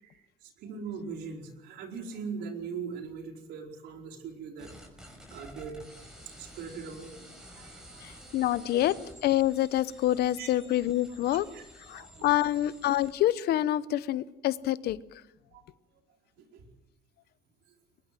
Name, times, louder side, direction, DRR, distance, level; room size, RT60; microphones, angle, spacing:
voice 1, 0.0-4.7 5.3-5.8 6.4-7.1 7.6-8.3 10.4-10.5 11.5-11.6 11.9-12.3 15.5-15.6 16.4-16.6, right 5 dB, 85° right, 2 dB, 4.7 m, -41 dB
sound 1, 4.6-13.1, equal, 5° right, 6.0 m, -51 dB
voice 2, 8.0-11.5 11.9-15.0, left 13 dB, 70° left, 17 dB, 0.8 m, -27 dB
22.5 x 20.5 x 7.6 m, 1.0 s
cardioid pair, 110°, 17 cm